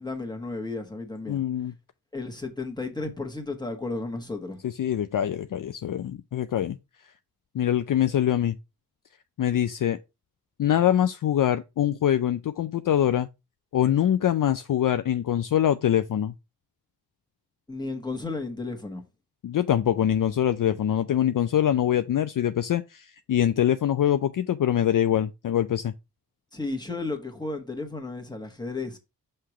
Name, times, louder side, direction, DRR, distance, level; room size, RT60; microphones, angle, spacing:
voice 1, 0.0-1.4 2.1-4.6 17.7-19.0 26.5-29.0, left 3 dB, 10° left, 1.4 m, -33 dB
voice 2, 1.3-1.7 4.6-6.8 7.5-8.6 9.4-10.0 10.6-13.3 13.7-16.3 19.4-25.9, left 10 dB, 55° left, 0.5 m, -24 dB
5.7 x 3.3 x 5.8 m
wide cardioid pair, 105°, 39 cm